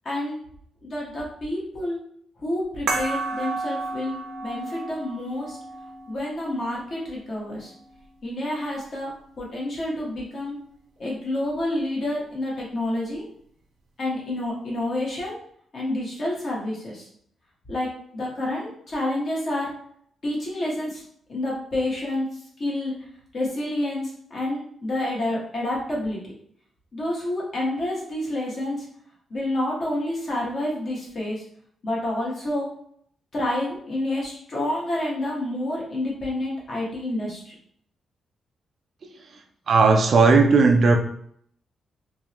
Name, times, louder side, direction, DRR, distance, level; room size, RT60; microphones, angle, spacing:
voice 1, 0.0-0.4 0.8-2.0 2.4-4.2 4.4-5.6 6.1-7.7 8.2-9.1 9.4-10.6 11.0-13.2 14.0-15.4 15.7-17.1 17.7-19.7 20.2-21.0 21.3-22.3 22.6-22.9 23.3-26.3 26.9-28.8 29.3-31.4 31.8-32.7 33.3-37.5, left 1 dB, 35° left, -4 dB, 1.2 m, -28 dB
sound 1, 2.9-8.0, right 3 dB, 75° right, 0.7 m, -33 dB
voice 2, 39.7-41.0, right 4 dB, 40° right, 2 dB, 0.4 m, -16 dB
3.5 x 3.0 x 2.9 m, 0.65 s
wide cardioid pair, 175°, 0 cm